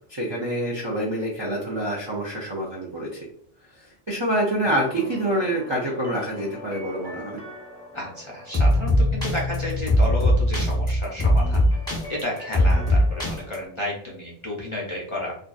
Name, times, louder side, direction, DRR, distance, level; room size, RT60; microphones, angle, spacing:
voice 1, 0.1-3.3 3.8-7.4, right 1 dB, 45° right, -4 dB, 0.3 m, -26 dB
sound 1, 4.6-13.6, left 1 dB, 5° left, 0.8 m, -23 dB
voice 2, 7.9-11.6 12.1-15.4, left 1 dB, 40° left, -3 dB, 0.4 m, -32 dB
2.5 x 2.3 x 2.2 m, 0.64 s
omnidirectional pair, 1.1 m